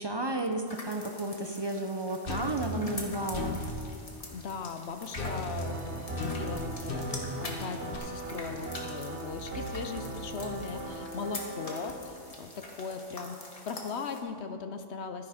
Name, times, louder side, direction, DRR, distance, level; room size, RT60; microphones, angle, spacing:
voice 1, 0.0-3.6, right 2 dB, 35° right, 5 dB, 0.4 m, -32 dB
sound 1, 0.7-14.2, left 2 dB, 30° left, 1.4 m, -45 dB
sound 2, 2.3-3.8 5.1-8.0, left 2 dB, 50° left, 1.3 m, -36 dB
voice 2, 4.3-15.3, left 5 dB, 65° left, 8 dB, 0.9 m, -39 dB
sound 3, 5.5-11.9, right 2 dB, 55° right, 1.5 m, -39 dB
12.0 x 10.5 x 5.0 m, 2.3 s
omnidirectional pair, 1.3 m